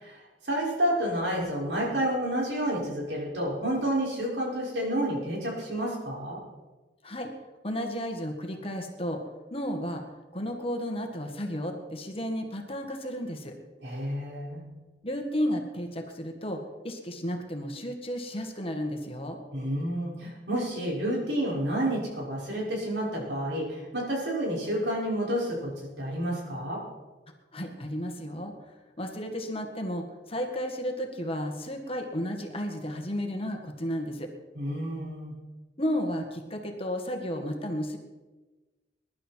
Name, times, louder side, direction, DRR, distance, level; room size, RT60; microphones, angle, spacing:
voice 1, 0.0-6.4 13.8-14.6 19.5-26.8 34.5-35.3, right 1 dB, 75° right, -3 dB, 6.2 m, -30 dB
voice 2, 7.6-9.2 9.5-10.0 10.3-13.5 15.0-19.4 27.5-28.5 29.0-34.3 35.8-38.0, equal, 35° left, 3 dB, 1.9 m, -33 dB
22.0 x 11.5 x 4.6 m, 1.2 s
head